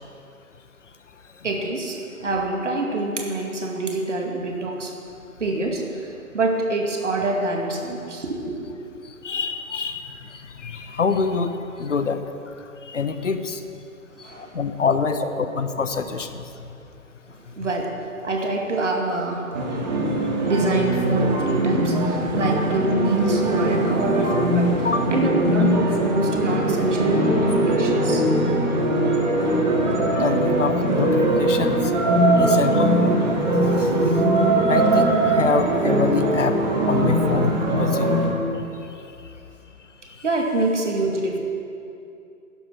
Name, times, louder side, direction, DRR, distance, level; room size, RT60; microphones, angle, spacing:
voice 1, 1.4-4.9 5.4-8.7 14.1-14.6 15.2-15.3 17.3-19.6 20.4-28.2 40.2-41.4, right 2 dB, 55° right, 1 dB, 2.2 m, -26 dB
voice 2, 9.2-10.1 10.6-11.5 11.8-12.2 12.9-13.6 14.4-16.3 24.8-25.1 30.2-31.8 32.4-33.4 33.8-33.9 34.7-36.6 36.9-38.3, left 5 dB, 55° left, 9 dB, 1.0 m, -25 dB
sound 1, 19.5-38.3, right 1 dB, 30° right, 1.8 m, -21 dB
11.5 x 10.5 x 6.2 m, 2.7 s
figure-of-eight pair, 140°, 44 cm